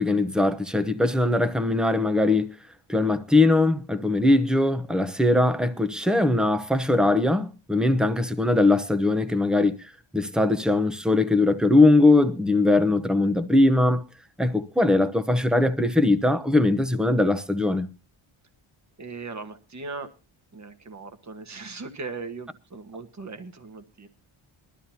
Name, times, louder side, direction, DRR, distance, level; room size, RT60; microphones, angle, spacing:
voice 1, 0.0-2.5 2.9-14.0 14.4-17.9, left 2 dB, ahead, 0.8 m, -21 dB
voice 2, 19.0-20.1 20.5-24.1, right 4 dB, 35° right, 1.4 m, -38 dB
21.5 x 12.5 x 2.8 m
wide cardioid pair, 145°, 50 cm